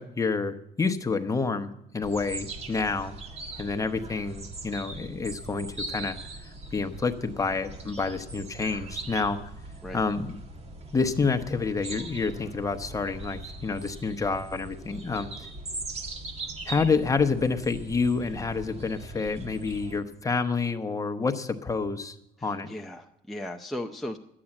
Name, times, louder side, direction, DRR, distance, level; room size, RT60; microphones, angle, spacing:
voice 1, 0.0-3.2 3.6-6.2 6.7-9.4 9.9-10.3 10.9-15.3 16.7-22.2 22.4-22.7, left 4 dB, 20° left, 8 dB, 1.0 m, -28 dB
sound 1, 2.0-20.0, right 2 dB, 40° right, 1.8 m, -41 dB
voice 2, 22.4-24.2, left 1 dB, ahead, 2 dB, 0.6 m, -37 dB
12.0 x 8.6 x 8.8 m, 0.80 s
cardioid pair, 110°, 17 cm